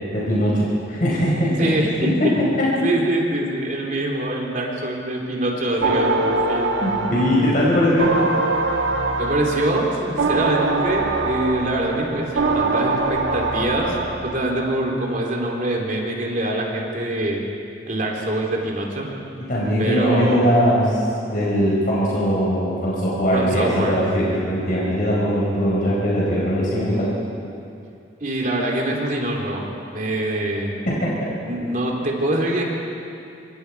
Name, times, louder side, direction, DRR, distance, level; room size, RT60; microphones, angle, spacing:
voice 1, 0.0-1.7 2.0-2.1 2.4-2.7 6.8-8.1 19.4-27.1 31.0-31.3, equal, 45° left, -6 dB, 4.8 m, -20 dB
voice 2, 1.6-2.3 2.8-6.7 9.2-14.0 14.2-17.4 17.9-19.1 19.8-20.4 23.3-24.0 28.2-29.6 29.9-30.7 31.4-32.6, right 1 dB, 45° right, -1 dB, 3.3 m, -24 dB
sound 1, 5.8-14.5, right 3 dB, 90° right, 1.8 m, -23 dB
25.5 x 25.0 x 4.7 m, 2.6 s
head